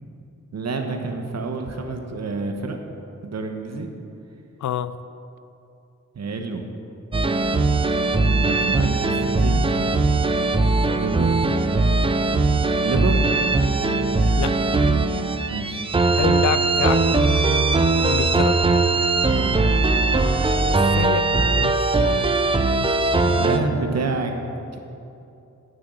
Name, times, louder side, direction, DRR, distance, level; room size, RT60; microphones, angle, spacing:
voice 1, 0.5-2.8 3.2-3.9 6.1-6.7 8.3-9.6 10.9-11.4 12.8-13.2 15.5-15.8 19.3-19.8 23.2-24.3 24.7-24.8, right 3 dB, 60° right, 4 dB, 1.1 m, -28 dB
voice 2, 4.6-4.9 14.4-14.6 16.2-17.0 18.0-18.6 20.9-21.8, left 10 dB, 75° left, 14 dB, 0.4 m, -26 dB
sound 1, 7.1-23.6, right 3 dB, 20° right, 0.5 m, -20 dB
9.5 x 6.5 x 7.5 m, 2.7 s
wide cardioid pair, 105°, 29 cm